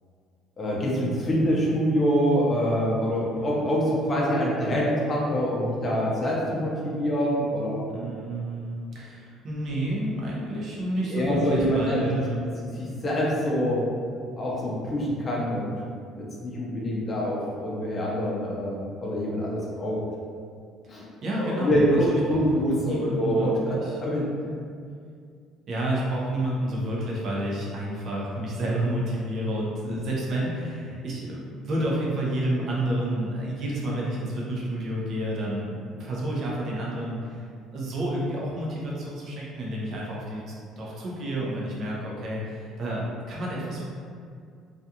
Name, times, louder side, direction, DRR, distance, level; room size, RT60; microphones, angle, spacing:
voice 1, 0.6-7.9 11.0-12.1 12.6-13.9 14.4-15.7 16.2-20.0 20.9-21.0 21.4-24.2 29.8-30.0, equal, 25° left, -4 dB, 0.6 m, -25 dB
voice 2, 7.9-12.5 20.8-22.4 22.8-24.0 25.7-37.5 37.7-43.8, right 1 dB, 45° right, -5 dB, 0.7 m, -30 dB
2.4 x 2.4 x 2.8 m, 2.2 s
cardioid pair, 145°, 0 cm